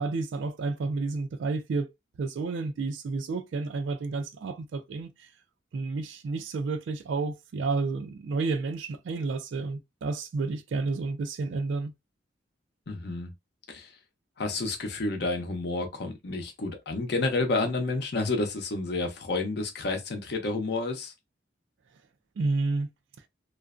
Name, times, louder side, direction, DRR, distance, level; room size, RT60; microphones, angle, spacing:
voice 1, 0.0-1.9 2.2-5.3 5.7-11.9 22.4-22.9, right 3 dB, 80° right, 0.4 m, -30 dB
voice 2, 12.9-13.3 13.7-13.9 14.4-21.1, left 3 dB, 60° left, 0.6 m, -30 dB
2.4 x 2.1 x 2.4 m
head